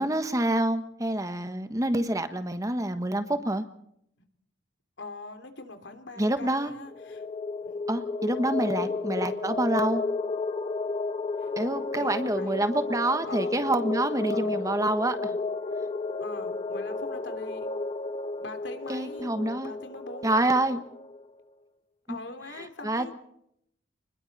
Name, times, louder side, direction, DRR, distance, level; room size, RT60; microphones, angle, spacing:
voice 1, 0.0-3.6 6.2-6.7 7.9-10.0 11.6-15.4 18.9-19.7 20.2-20.8 22.1-22.2 22.8-23.1, right 1 dB, 20° right, 9 dB, 1.3 m, -27 dB
voice 2, 5.0-7.2 7.6-7.7 8.8-8.9 11.4-11.5 11.9-12.8 13.3-13.7 14.3-14.6 16.2-17.7 18.4-19.4 19.6-20.3 22.1-23.1, left 2 dB, 80° left, 7 dB, 3.1 m, -43 dB
sound 1, 6.9-21.2, left 3 dB, 30° left, 1.1 m, -32 dB
29.5 x 21.0 x 4.2 m, 0.73 s
head